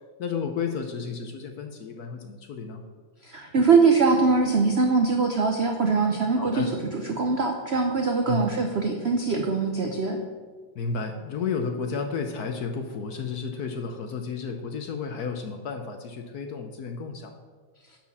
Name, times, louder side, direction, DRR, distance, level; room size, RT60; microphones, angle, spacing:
voice 1, 0.2-2.8 6.4-6.7 8.3-8.5 10.7-17.3, left 5 dB, 65° left, 5 dB, 1.0 m, -32 dB
voice 2, 3.2-10.2, right 4 dB, 85° right, 3 dB, 0.5 m, -22 dB
10.5 x 4.4 x 7.1 m, 1.4 s
omnidirectional pair, 2.3 m